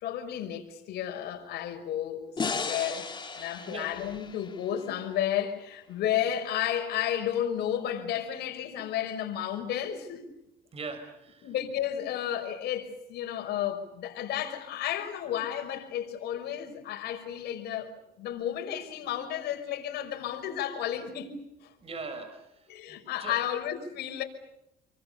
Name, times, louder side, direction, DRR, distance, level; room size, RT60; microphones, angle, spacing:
voice 1, 0.0-3.0 3.3-10.3 11.4-17.9 18.2-21.4 21.6-21.7 22.7-24.2, left 10 dB, 75° left, 5.4 m, -32 dB
sound 1, 2.4-5.6, left 5 dB, 25° left, 2.3 m, -36 dB
voice 2, 3.2-3.9 10.7-11.5 21.8-23.4, right 4 dB, 35° right, 5.5 m, -42 dB
28.5 x 24.5 x 6.9 m
cardioid pair, 110°, 17 cm